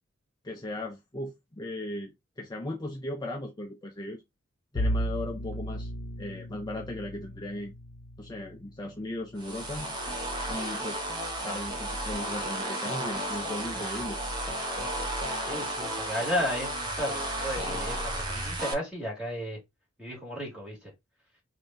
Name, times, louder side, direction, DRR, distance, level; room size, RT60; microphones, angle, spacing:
voice 1, 0.4-4.2 4.7-5.9 6.2-7.7 8.2-9.9 10.5-11.0 11.4-14.2, left 1 dB, 20° left, 0.5 m, -37 dB
Bowed string instrument, 4.7-9.8, equal, 55° left, 1.0 m, -35 dB
sound 1, 9.4-18.7, right 1 dB, 20° right, 0.8 m, -33 dB
voice 2, 15.4-19.6 20.0-20.9, equal, 5° right, 1.9 m, -34 dB
3.5 x 2.6 x 3.5 m
head